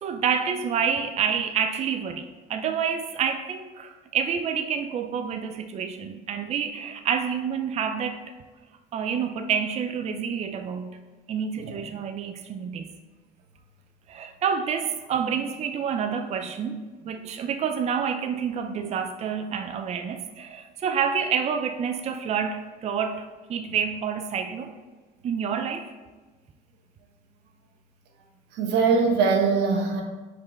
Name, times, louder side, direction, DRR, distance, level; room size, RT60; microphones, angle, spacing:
voice 1, 0.0-8.2 8.9-11.0 11.3-12.9 14.1-24.8 25.2-25.9, right 7 dB, 40° right, 7 dB, 0.4 m, -28 dB
voice 2, 28.6-30.0, right 5 dB, 90° right, 2 dB, 1.1 m, -22 dB
5.2 x 5.2 x 4.1 m, 1.3 s
cardioid pair, 110°, 17 cm